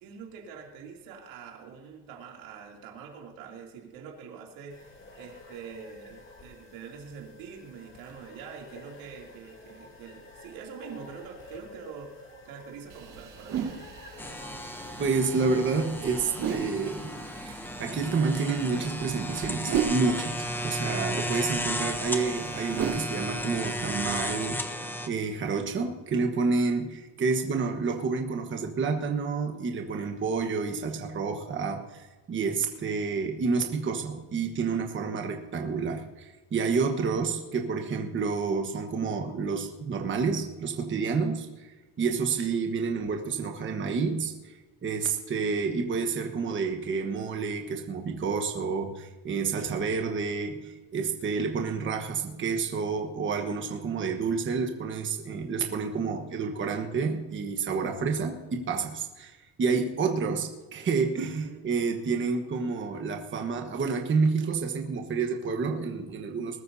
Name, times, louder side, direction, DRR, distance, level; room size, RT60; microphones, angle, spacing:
voice 1, 0.0-13.7 61.3-61.6, right 6 dB, 90° right, 0 dB, 2.8 m, -45 dB
sound 1, 4.7-16.9, left 2 dB, 25° left, 2.9 m, -51 dB
sound 2, 12.9-24.4, right 7 dB, 45° right, 2.0 m, -37 dB
sound 3, 14.2-25.1, equal, 5° left, 0.7 m, -34 dB
voice 2, 15.0-17.1 17.5-44.6 44.8-66.6, right 4 dB, 25° right, 3 dB, 1.2 m, -29 dB
20.5 x 13.0 x 2.7 m, 1.2 s
cardioid pair, 155°, 45 cm